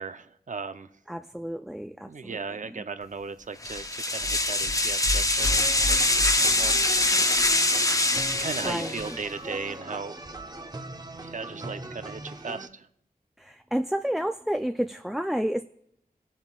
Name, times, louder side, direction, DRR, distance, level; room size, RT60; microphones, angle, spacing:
voice 1, 0.0-0.9 2.0-7.5 8.4-10.2 11.2-12.9, right 4 dB, 55° right, 10 dB, 0.7 m, -37 dB
voice 2, 1.1-2.4 8.6-9.2 13.4-15.6, equal, ahead, 7 dB, 0.4 m, -30 dB
sound 1, 3.6-9.2, left 2 dB, 20° left, 0.8 m, -24 dB
sound 2, 5.4-12.7, right 1 dB, 25° right, 0.8 m, -40 dB
18.0 x 7.3 x 2.4 m, 0.74 s
cardioid pair, 50°, 16 cm